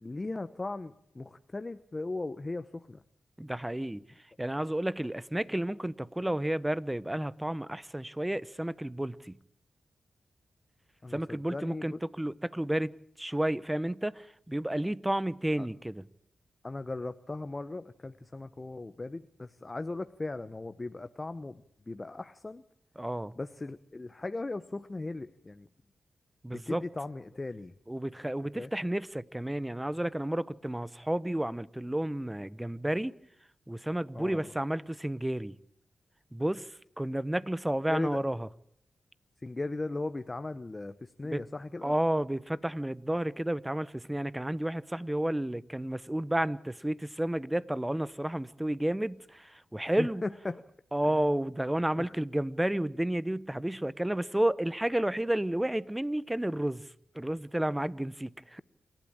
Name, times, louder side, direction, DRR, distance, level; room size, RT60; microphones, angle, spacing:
voice 1, 0.0-3.0 11.0-12.0 15.6-15.7 16.6-22.6 23.4-25.7 26.5-27.7 28.4-28.7 34.1-34.5 37.9-38.2 39.4-41.9 50.0-50.6 51.0-51.2 52.0-52.1, left 2 dB, 30° left, 0.9 m, -38 dB
voice 2, 3.4-4.0 4.4-9.4 11.1-16.0 23.0-23.3 26.4-26.8 27.9-33.1 33.7-35.6 36.3-38.5 41.2-41.4 41.8-50.2 50.9-58.6, right 1 dB, 10° right, 0.9 m, -31 dB
27.5 x 12.0 x 8.8 m
cardioid pair, 50°, 0 cm